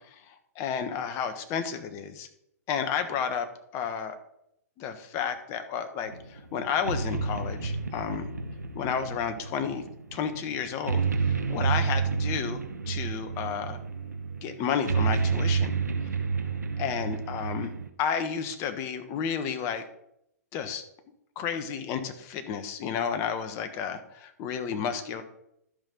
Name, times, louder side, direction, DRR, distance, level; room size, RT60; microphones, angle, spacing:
voice 1, 0.1-2.3 2.7-3.5 3.7-4.2 4.8-8.3 8.7-9.8 10.1-13.8 14.4-15.8 16.8-17.7 18.0-19.8 20.5-20.8 21.3-25.2, left 7 dB, 35° left, 9 dB, 1.3 m, -32 dB
sound 1, 6.1-17.9, right 5 dB, 90° right, 1.1 m, -30 dB
12.5 x 5.5 x 5.5 m, 0.77 s
hypercardioid pair, 120°, 9 cm